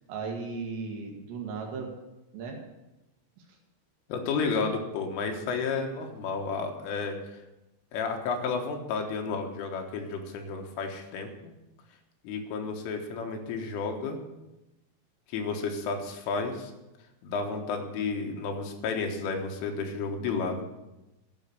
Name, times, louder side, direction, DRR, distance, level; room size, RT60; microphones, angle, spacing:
voice 1, 0.1-1.9 2.3-2.6, right 4 dB, 70° right, 1 dB, 3.6 m, -36 dB
voice 2, 4.1-7.4 7.9-11.5 12.2-14.2 15.3-16.7 17.2-20.8, left 4 dB, 80° left, 3 dB, 3.9 m, -32 dB
12.0 x 6.6 x 8.2 m, 0.98 s
omnidirectional pair, 5.7 m